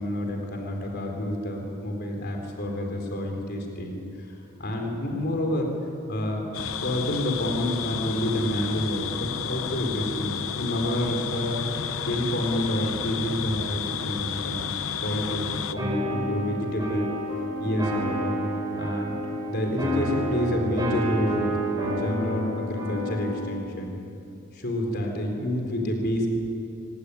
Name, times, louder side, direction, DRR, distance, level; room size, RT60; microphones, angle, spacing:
voice 1, 0.0-4.0 4.6-5.7 6.1-6.4 6.7-11.6 12.1-14.7 15.0-17.1 17.6-18.3 18.8-19.1 19.5-24.0 24.5-26.3, left 1 dB, 50° left, 2 dB, 4.0 m, -28 dB
sound 1, 6.5-15.7, left 7 dB, 70° left, 0.9 m, -32 dB
sound 2, 15.8-23.6, equal, 20° right, 6.7 m, -29 dB
25.5 x 19.0 x 9.9 m, 2.7 s
head